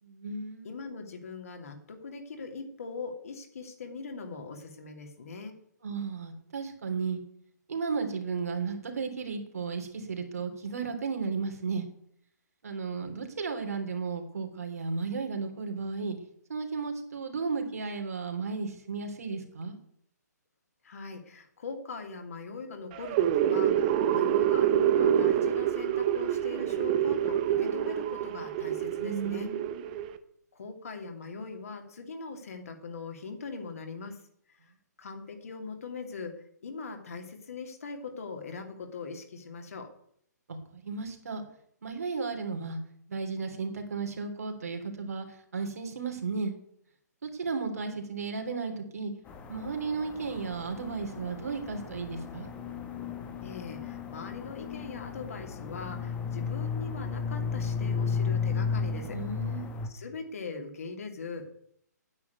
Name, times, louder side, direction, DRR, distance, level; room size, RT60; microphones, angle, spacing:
voice 1, 0.0-0.7 5.8-7.2 7.7-11.8 12.6-16.2 16.5-19.8 29.0-29.8 40.5-41.4 41.8-42.8 43.1-46.5 47.2-49.1 49.5-52.5 59.1-59.7, right 4 dB, 60° right, 4 dB, 3.1 m, -34 dB
voice 2, 0.6-5.6 20.8-29.5 30.5-34.2 34.5-34.6 35.0-39.9 53.4-59.2 59.9-61.6, left 4 dB, 55° left, 3 dB, 2.7 m, -41 dB
sound 1, 22.9-30.2, right 10 dB, 30° right, 0.9 m, -27 dB
sound 2, 49.3-59.9, left 5 dB, 15° left, 1.3 m, -34 dB
9.7 x 8.5 x 9.4 m, 0.69 s
figure-of-eight pair, 135°, 10 cm